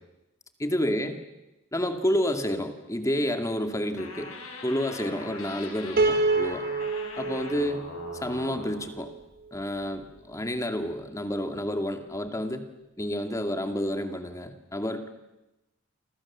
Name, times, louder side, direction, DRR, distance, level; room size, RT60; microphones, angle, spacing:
voice 1, 0.6-1.2 1.7-4.3 4.6-6.6 7.2-7.8 8.2-9.1 9.5-12.7 13.0-15.1, equal, 15° left, 6 dB, 2.3 m, -29 dB
sound 1, 4.0-8.9, left 3 dB, 85° left, 7.7 m, -42 dB
Piano, 6.0-9.2, right 3 dB, 45° right, 1.8 m, -28 dB
30.0 x 24.5 x 7.4 m, 0.98 s
head